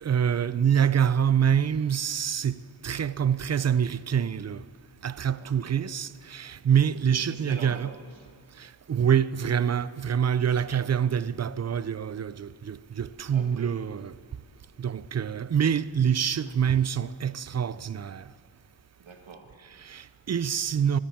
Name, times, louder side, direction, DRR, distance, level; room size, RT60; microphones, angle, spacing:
voice 1, 0.0-4.6 5.0-7.9 8.6-14.1 14.8-18.3 19.8-21.0, right 8 dB, 35° right, 0.4 m, -26 dB
voice 2, 5.4-5.8 6.9-8.3 10.7-10.8 13.3-13.8 19.0-19.6 19.9-20.2, right 4 dB, 80° right, 1.6 m, -45 dB
13.5 x 8.8 x 8.5 m
cardioid pair, 55°, 46 cm